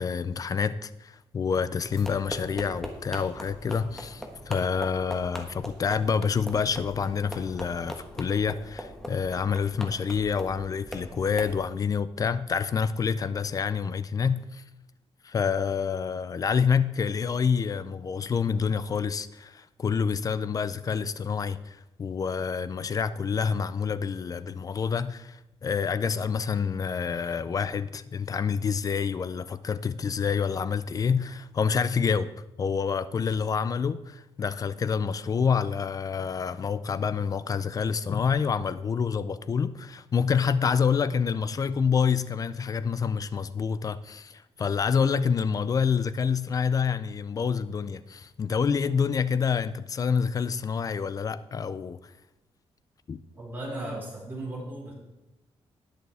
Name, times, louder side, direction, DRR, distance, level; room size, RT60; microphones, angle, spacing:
voice 1, 0.0-14.6 15.2-32.3 32.6-52.0 53.1-53.2, left 6 dB, 35° left, 0.5 m, -27 dB
sound 1, 1.9-11.6, equal, 5° left, 1.3 m, -41 dB
voice 2, 53.3-54.9, right 1 dB, 20° right, 4.5 m, -36 dB
18.5 x 6.6 x 3.5 m
wide cardioid pair, 150°, 10 cm